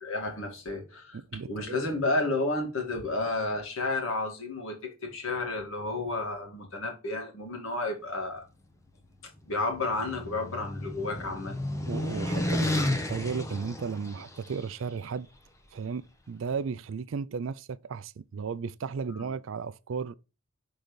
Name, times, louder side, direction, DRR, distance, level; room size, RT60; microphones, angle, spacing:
voice 1, 0.0-1.2 1.5-8.5 9.5-11.6 19.1-19.3, left 2 dB, 60° left, 2.1 m, -31 dB
voice 2, 1.1-1.8 11.9-15.3 15.7-20.1, right 5 dB, 60° right, 0.4 m, -35 dB
sound 1, 9.4-14.6, left 1 dB, 15° left, 0.8 m, -32 dB
6.2 x 3.8 x 5.2 m
head